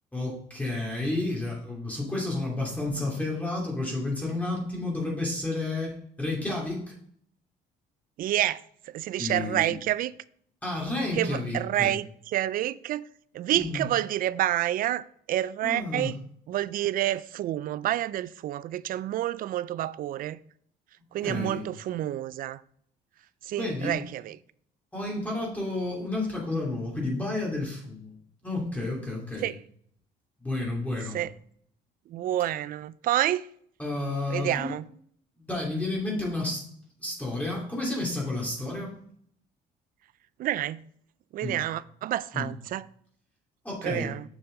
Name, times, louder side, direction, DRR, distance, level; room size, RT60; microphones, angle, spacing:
voice 1, 0.1-6.9 9.2-9.7 10.6-11.9 13.5-13.8 15.6-16.1 21.2-21.6 23.6-24.0 24.9-28.1 28.4-29.5 30.4-31.2 33.8-34.7 35.4-36.7 37.0-38.9 41.4-41.6 42.3-42.5 43.6-44.1, left 2 dB, 10° left, 2.7 m, -31 dB
voice 2, 8.2-8.6 8.9-10.1 11.1-13.0 13.3-16.2 16.5-20.4 21.1-22.6 23.4-24.4 29.4-29.5 31.1-31.3 32.1-33.4 34.3-34.8 40.4-40.8 41.3-42.9 43.8-44.2, right 13 dB, 55° right, 0.4 m, -28 dB
7.2 x 6.6 x 3.9 m
cardioid pair, 110°, 17 cm